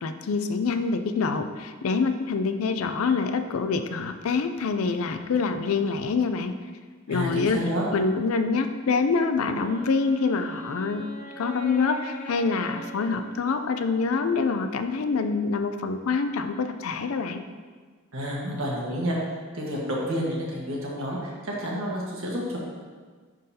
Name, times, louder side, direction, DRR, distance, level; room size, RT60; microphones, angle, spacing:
voice 1, 0.0-6.5 7.1-7.6 7.9-11.0 11.4-17.4, left 4 dB, 85° left, 9 dB, 0.4 m, -26 dB
voice 2, 7.1-7.9 18.1-19.2 19.5-22.6, equal, 75° right, -3 dB, 1.4 m, -29 dB
Wind instrument woodwind instrument, 9.4-14.3, right 1 dB, 40° left, 0.9 m, -41 dB
10.5 x 3.8 x 2.8 m, 1.5 s
head